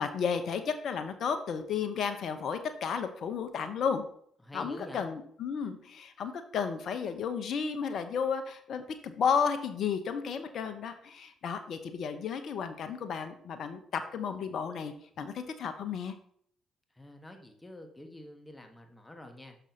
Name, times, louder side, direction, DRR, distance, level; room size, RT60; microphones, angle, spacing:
voice 1, 0.0-4.0 4.5-16.1, left 6 dB, 60° left, 9 dB, 0.8 m, -33 dB
voice 2, 4.4-5.1 16.9-19.6, left 1 dB, 15° left, 5 dB, 1.4 m, -47 dB
6.2 x 5.5 x 4.2 m, 0.63 s
hypercardioid pair, 50°, 0 cm